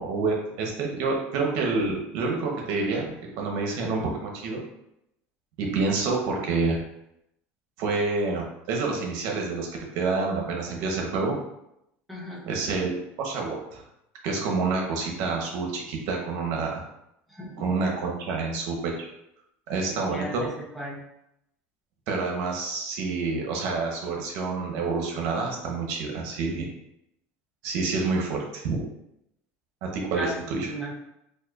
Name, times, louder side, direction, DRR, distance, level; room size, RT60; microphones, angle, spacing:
voice 1, 0.0-4.6 5.6-6.8 7.8-9.7 9.9-11.3 12.5-12.9 13.2-13.8 14.2-16.8 17.6-19.1 19.7-20.5 22.1-26.7 27.6-28.8 29.8-30.7, right 4 dB, 70° right, 0 dB, 1.0 m, -28 dB
voice 2, 12.1-12.4 17.3-17.7 19.9-21.0 30.1-30.9, equal, ahead, -4 dB, 0.8 m, -36 dB
4.2 x 2.6 x 2.4 m, 0.81 s
cardioid pair, 130°, 5 cm